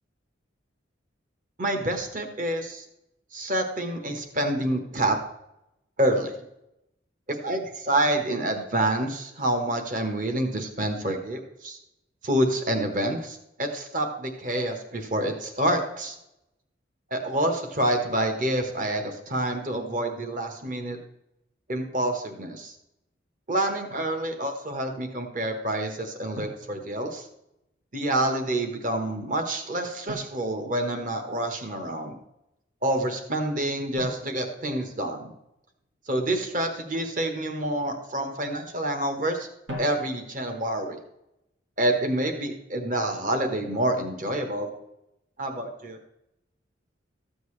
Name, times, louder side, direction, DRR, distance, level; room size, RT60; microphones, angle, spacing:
voice 1, 1.6-2.8 3.3-5.2 6.0-6.4 7.3-11.8 12.2-16.2 17.1-21.0 21.7-22.7 23.5-27.3 27.9-32.2 32.8-35.3 36.1-39.5 39.8-41.0 41.8-44.7 45.4-46.0, right 1 dB, 40° right, 5 dB, 1.2 m, -27 dB
Drum, 23.9-24.2 26.3-27.5 30.1-31.5 34.0-35.7 39.7-40.6, equal, 80° right, 2.0 m, -42 dB
13.5 x 7.9 x 3.2 m, 0.85 s
head